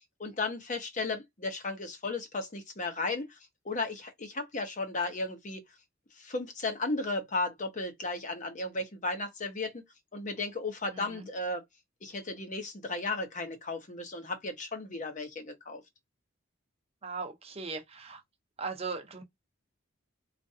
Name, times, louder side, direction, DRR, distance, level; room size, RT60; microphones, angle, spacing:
voice 1, 0.2-3.4 3.6-5.6 6.1-9.8 10.1-11.6 12.0-15.8, left 3 dB, 40° left, 0.9 m, -35 dB
voice 2, 10.9-11.3 17.0-18.2 18.6-19.2, right 4 dB, 30° right, 0.8 m, -38 dB
4.4 x 2.4 x 2.7 m
head